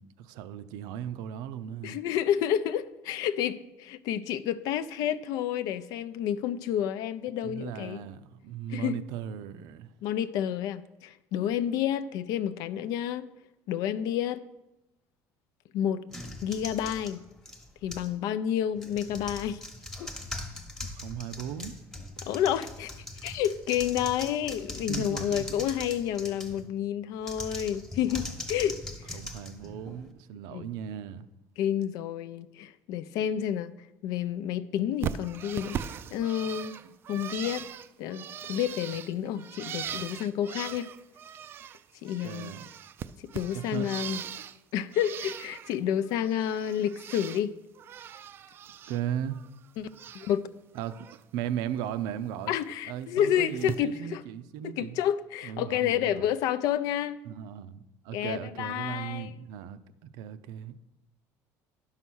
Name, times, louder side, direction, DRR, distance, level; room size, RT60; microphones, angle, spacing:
voice 1, 0.0-2.0 7.4-9.9 20.8-21.7 24.9-25.7 29.1-31.3 42.2-42.7 43.5-43.9 48.9-49.4 50.7-52.5 52.9-55.0 55.4-56.3 57.2-60.8, right 10 dB, 75° right, 0.6 m, -37 dB
voice 2, 1.8-8.0 8.7-9.0 10.0-13.3 13.7-14.4 15.7-16.0 16.4-17.2 17.8-19.6 20.0-20.1 22.2-22.9 23.2-28.8 29.1-29.2 30.5-30.7 31.6-33.7 34.0-35.8 36.1-36.7 37.1-37.6 38.0-40.9 42.0-42.5 43.3-44.2 44.7-47.5 49.8-49.9 50.1-50.5 52.5-54.2 54.8-57.2 58.1-59.3, left 10 dB, 65° left, 0.5 m, -30 dB
sound 1, 16.1-18.2 18.7-26.7 27.2-30.1, left 2 dB, 5° left, 1.0 m, -41 dB
Bird, 35.0-41.8 42.1-44.6 44.9-45.8 46.1-47.4 47.7-49.0 49.3-50.4 50.7-51.2 52.5-52.6 53.6-53.7, right 8 dB, 35° right, 0.3 m, -40 dB
11.0 x 5.7 x 6.2 m
cardioid pair, 160°, 7 cm